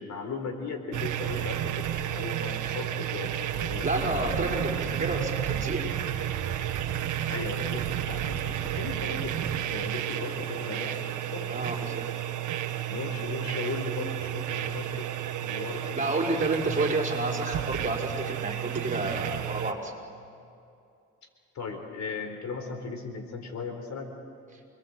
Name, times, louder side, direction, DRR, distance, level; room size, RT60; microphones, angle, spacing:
voice 1, 0.0-3.9 7.2-11.5 12.9-15.1 15.4-16.2 21.5-24.1, left 4 dB, 65° left, 5 dB, 4.2 m, -37 dB
sound 1, 0.9-19.7, right 11 dB, 80° right, 1.7 m, -32 dB
voice 2, 3.8-5.9 11.5-12.0 15.9-19.9, right 2 dB, 25° right, 0 dB, 5.5 m, -30 dB
28.5 x 22.0 x 7.9 m, 2.5 s
cardioid pair, 90°, 30 cm